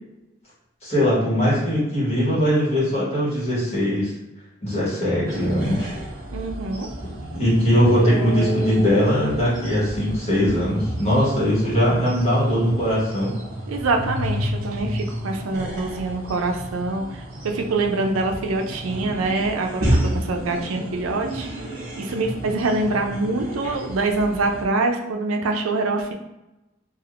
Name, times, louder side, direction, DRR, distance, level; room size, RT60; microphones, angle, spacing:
voice 1, 0.8-4.1 4.6-5.9 7.3-13.3, equal, 30° left, -9 dB, 1.4 m, -20 dB
sound 1, 5.2-24.6, equal, 50° right, 1.1 m, -31 dB
voice 2, 6.3-6.9 13.7-17.1 17.5-21.5 22.0-26.1, right 3 dB, 90° right, 3 dB, 0.5 m, -24 dB
3.4 x 2.5 x 2.4 m, 0.99 s
head